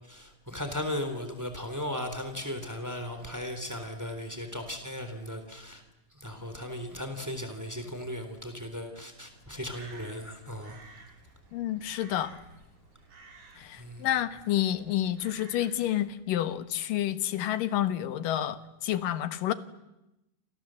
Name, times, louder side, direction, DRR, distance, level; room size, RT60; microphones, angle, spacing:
voice 1, 0.0-5.8 6.1-10.8 13.8-14.1, left 1 dB, 5° right, 7 dB, 3.2 m, -37 dB
Crow, 9.2-16.0, right 3 dB, 65° right, 5.9 m, -54 dB
voice 2, 11.5-12.4 13.6-19.5, left 12 dB, 85° left, 12 dB, 3.0 m, -29 dB
28.0 x 27.5 x 7.8 m, 0.93 s
omnidirectional pair, 3.8 m